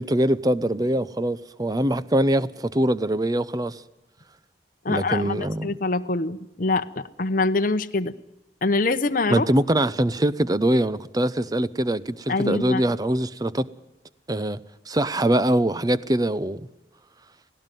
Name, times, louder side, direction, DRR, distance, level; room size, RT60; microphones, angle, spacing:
voice 1, 0.0-3.8 4.9-5.7 9.3-13.7 14.3-14.6 14.9-16.7, right 1 dB, 20° right, 16 dB, 0.7 m, -23 dB
voice 2, 4.8-8.2 8.6-9.5 12.3-12.8, left 3 dB, 50° left, 8 dB, 0.9 m, -24 dB
18.0 x 17.5 x 9.2 m, 0.94 s
head